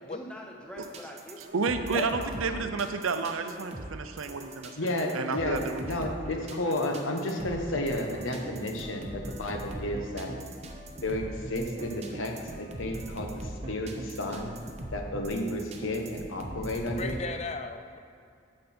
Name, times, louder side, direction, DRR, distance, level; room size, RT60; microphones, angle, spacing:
voice 1, 0.0-1.8 2.2-2.4 3.5-3.6, equal, 5° left, -1 dB, 0.9 m, -44 dB
sound 1, 0.8-17.2, right 1 dB, 30° right, 0.8 m, -41 dB
voice 2, 1.5-4.9 5.1-6.1, right 4 dB, 90° right, 8 dB, 0.6 m, -31 dB
voice 3, 4.8-5.6 5.9-10.3 11.0-14.5 14.9-17.2, left 1 dB, 80° left, 2 dB, 1.2 m, -32 dB
voice 4, 16.9-18.0, left 4 dB, 30° left, 7 dB, 0.5 m, -36 dB
8.9 x 7.8 x 4.4 m, 2.4 s
head